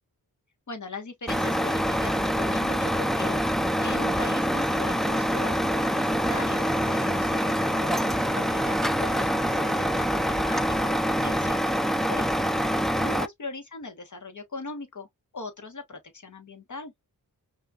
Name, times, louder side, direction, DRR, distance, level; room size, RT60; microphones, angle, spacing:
voice 1, 0.7-11.6 12.1-12.7 13.0-15.1 15.3-16.9, left 3 dB, 50° left, 1.4 m, -40 dB
Truck, 1.3-13.3, equal, ahead, 0.4 m, -25 dB
5.4 x 2.5 x 2.4 m
wide cardioid pair, 85°, 37 cm